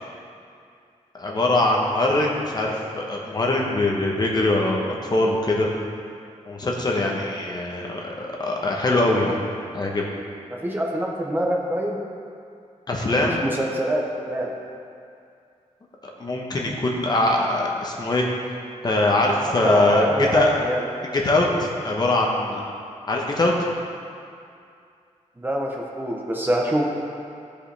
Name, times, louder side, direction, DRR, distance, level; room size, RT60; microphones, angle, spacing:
voice 1, 1.1-5.7 6.5-9.4 9.7-10.0 12.9-13.4 16.2-18.3 18.8-20.6 21.1-22.6 23.1-23.5, left 2 dB, 35° left, -1 dB, 1.0 m, -22 dB
voice 2, 10.5-12.0 13.2-14.5 19.6-20.8 25.4-26.9, right 1 dB, 15° right, -2 dB, 0.8 m, -25 dB
14.5 x 5.1 x 3.4 m, 2.4 s
wide cardioid pair, 160°, 13 cm